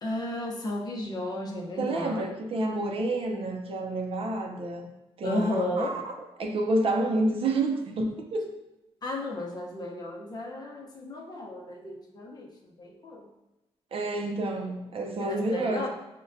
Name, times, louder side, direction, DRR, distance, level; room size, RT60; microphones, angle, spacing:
voice 1, 0.0-2.4 5.2-5.9 9.0-13.3 15.2-15.9, left 1 dB, 40° left, 0 dB, 0.6 m, -33 dB
voice 2, 1.8-4.9 5.2-6.1 6.4-8.5 13.9-15.9, right 2 dB, 60° right, 3 dB, 0.5 m, -29 dB
5.0 x 2.1 x 2.5 m, 1.0 s
wide cardioid pair, 120°, 11 cm